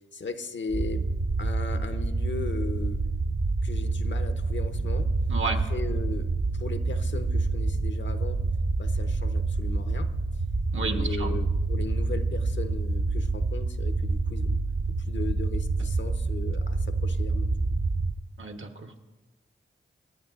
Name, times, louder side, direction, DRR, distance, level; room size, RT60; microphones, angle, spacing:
voice 1, 0.1-1.1 1.4-3.0 3.6-5.1 5.4-8.4 8.8-10.1 10.8-14.6 15.1-17.6, left 4 dB, 60° left, 9 dB, 0.8 m, -37 dB
sound 1, 0.7-18.1, right 3 dB, 40° right, 0.7 m, -27 dB
voice 2, 10.7-11.3 18.4-19.0, right 3 dB, 70° right, 5 dB, 1.2 m, -32 dB
24.0 x 9.0 x 2.4 m, 1.2 s
cardioid pair, 45°, 21 cm